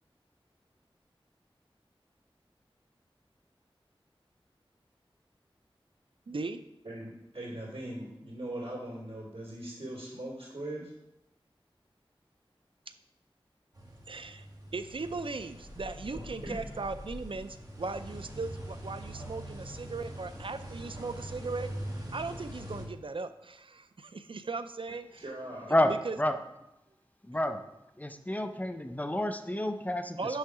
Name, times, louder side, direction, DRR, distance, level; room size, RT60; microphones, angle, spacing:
voice 1, 6.3-6.6 14.1-14.5 14.7-21.7 22.1-25.2 25.9-26.2 30.2-30.4, right 3 dB, 65° right, 11 dB, 0.5 m, -38 dB
voice 2, 6.8-10.9 16.1-16.5 25.2-25.7, right 1 dB, 85° right, -5 dB, 2.6 m, -40 dB
sound 1, 13.7-22.8, equal, 40° right, 1.6 m, -43 dB
voice 3, 27.3-27.6 28.0-30.2, left 1 dB, 15° left, 8 dB, 0.6 m, -29 dB
6.4 x 5.7 x 4.8 m, 0.88 s
wide cardioid pair, 50°, 10 cm